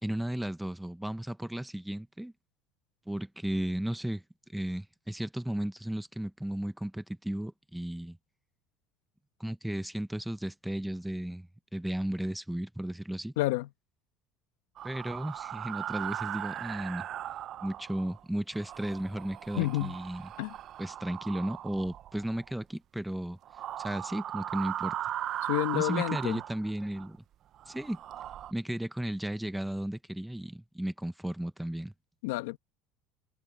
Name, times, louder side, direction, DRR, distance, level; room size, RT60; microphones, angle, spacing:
voice 1, 0.0-2.3 3.1-4.2 4.5-8.2 9.4-13.3 14.8-17.1 17.6-20.2 20.8-23.4 23.8-25.0 25.7-27.2 27.7-28.0 28.5-31.9, right 1 dB, 5° right, 1.0 m, -34 dB
voice 2, 13.4-13.7 19.5-20.0 20.4-20.5 25.4-26.4 32.2-32.6, left 18 dB, 85° left, 1.3 m, -30 dB
sound 1, 14.8-18.2 18.5-22.5 23.4-27.1 27.5-28.5, right 11 dB, 50° right, 0.6 m, -38 dB
supercardioid pair, 105°, 0 cm